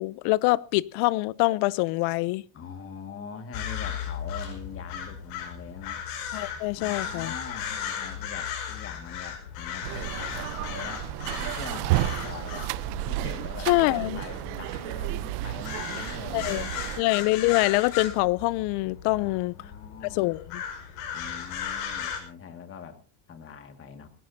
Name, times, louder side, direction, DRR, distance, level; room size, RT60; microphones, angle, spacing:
voice 1, 0.0-2.4 6.3-7.3 13.7-14.2 16.3-16.7 17.0-19.5 20.1-20.6, left 21 dB, 65° left, 0.7 m, -25 dB
voice 2, 2.5-6.0 6.8-12.7 13.1-16.8 19.1-20.3 21.1-23.0 23.3-24.1, left 7 dB, 30° left, 2.0 m, -43 dB
sound 1, 3.5-22.2, left 8 dB, 85° left, 5.1 m, -36 dB
sound 2, 9.8-17.0, right 16 dB, 65° right, 0.8 m, -32 dB
20.5 x 17.5 x 2.8 m
cardioid pair, 150°, 43 cm